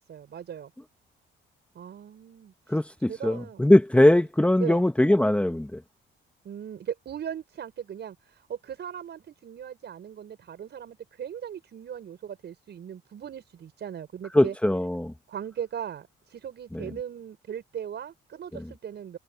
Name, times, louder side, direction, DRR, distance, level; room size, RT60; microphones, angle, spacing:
voice 1, 0.1-0.7 1.7-2.5 3.1-3.6 4.0-4.1 4.6-4.8 6.4-14.5 15.3-19.2, right 9 dB, 60° right, 5.9 m, -38 dB
voice 2, 2.7-5.8 14.3-15.1 16.7-16.9, left 1 dB, 5° left, 1.4 m, -21 dB
cardioid pair, 90°, 20 cm